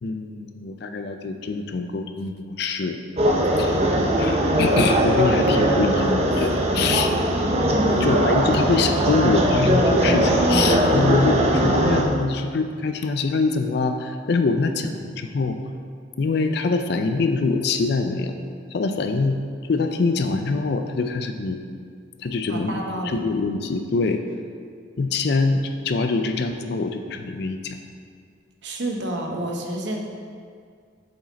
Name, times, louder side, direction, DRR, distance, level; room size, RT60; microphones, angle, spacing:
voice 1, 0.0-3.0 3.6-3.8 4.2-7.1 8.0-15.6 16.2-18.4 18.7-19.4 19.7-21.6 22.2-22.8 23.1-24.2 25.0-27.8, left 3 dB, 55° left, 7 dB, 0.4 m, -24 dB
sound 1, 3.2-12.0, right 1 dB, 30° right, 0.6 m, -20 dB
voice 2, 7.7-8.2 22.5-23.2 28.6-30.0, right 1 dB, 60° right, 1 dB, 0.8 m, -29 dB
7.3 x 5.0 x 4.0 m, 2.1 s
head